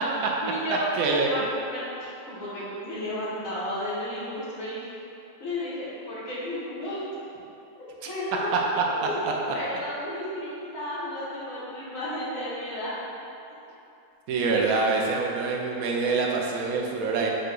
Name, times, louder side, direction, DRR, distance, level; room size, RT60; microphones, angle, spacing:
voice 1, 0.4-4.8 5.4-7.0 7.8-9.2 9.5-12.9, left 1 dB, 60° left, -10 dB, 1.5 m, -33 dB
voice 2, 0.9-1.3 8.0-8.1 8.5-8.6 14.3-17.3, right 4 dB, 75° right, -1 dB, 1.0 m, -25 dB
5.3 x 2.2 x 3.7 m, 2.8 s
omnidirectional pair, 1.6 m